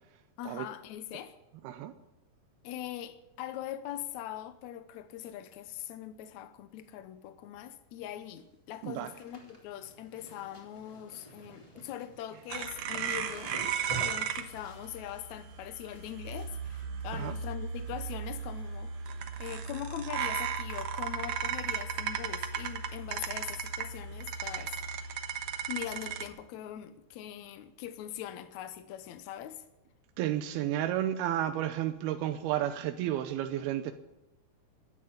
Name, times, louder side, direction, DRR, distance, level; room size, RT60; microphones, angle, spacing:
voice 1, 0.4-1.4 2.6-13.5 14.0-19.1 19.4-24.8 25.7-29.6, left 11 dB, 80° left, 1.7 m, -42 dB
sound 1, 8.1-8.4 8.7-17.9 18.2-18.7 19.0-19.8 20.2-20.3 21.2-21.5 21.7-21.8 22.2-22.3 23.9-24.0 24.7-24.8, right 1 dB, 10° left, 3.1 m, -49 dB
sound 2, 12.5-26.3, right 7 dB, 60° right, 2.0 m, -36 dB
voice 2, 30.2-33.9, right 12 dB, 90° right, 2.7 m, -32 dB
14.0 x 10.5 x 9.8 m
omnidirectional pair, 4.3 m